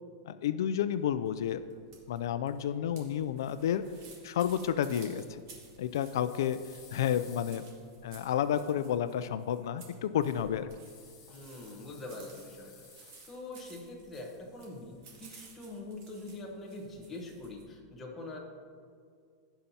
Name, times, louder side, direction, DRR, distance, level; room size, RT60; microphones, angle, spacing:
voice 1, 0.3-1.6 2.1-3.8 4.2-5.4 5.8-6.6 6.9-7.6 8.0-10.7, left 9 dB, 80° left, 12 dB, 0.3 m, -31 dB
sound 1, 0.9-17.6, right 3 dB, 55° right, 2.1 m, -56 dB
sound 2, 5.8-8.8 10.8-13.6 13.9-15.0, left 6 dB, 35° left, 2.1 m, -57 dB
voice 2, 11.3-18.4, left 2 dB, 10° left, -2 dB, 1.1 m, -44 dB
16.0 x 5.8 x 2.8 m, 2.1 s
supercardioid pair, 175°, 2 cm